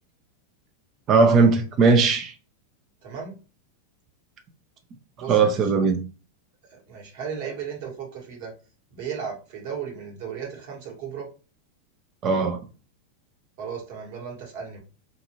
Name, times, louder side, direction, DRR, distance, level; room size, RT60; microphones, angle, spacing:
voice 1, 1.1-2.3 5.3-6.0 12.2-12.6, right 4 dB, 35° right, 0.5 m, -18 dB
voice 2, 3.0-3.3 5.2-5.7 6.7-8.5 8.9-11.3 13.6-14.8, right 7 dB, 60° right, 1.4 m, -35 dB
2.5 x 2.4 x 3.0 m
hypercardioid pair, 100°, 0 cm